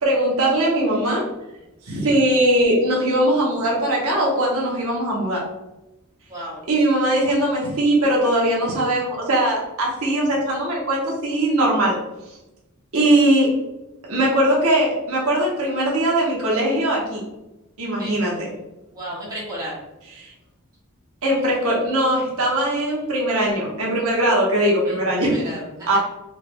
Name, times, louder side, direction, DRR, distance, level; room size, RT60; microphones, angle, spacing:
voice 1, 0.0-1.3 1.9-5.4 6.7-12.0 12.9-13.5 14.1-17.2 17.8-18.5 20.2-20.3 21.2-25.3 25.9-26.0, right 1 dB, 75° right, -3 dB, 1.0 m, -20 dB
voice 2, 6.3-6.6 18.0-18.2 18.9-19.8 24.8-26.0, equal, 15° right, -8 dB, 1.5 m, -34 dB
4.4 x 3.3 x 2.2 m, 0.97 s
head